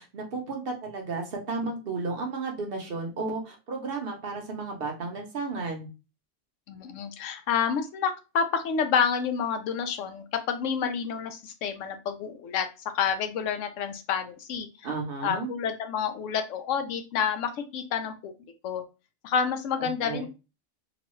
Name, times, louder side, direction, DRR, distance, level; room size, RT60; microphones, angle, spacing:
voice 1, 0.0-5.9 14.8-15.5 19.8-20.3, right 3 dB, 55° right, 2 dB, 0.8 m, -33 dB
voice 2, 6.7-12.7 12.9-14.7 15.2-18.3 18.6-18.8 19.2-20.3, left 7 dB, 80° left, 8 dB, 0.9 m, -29 dB
3.0 x 2.2 x 3.0 m, 0.29 s
omnidirectional pair, 1.3 m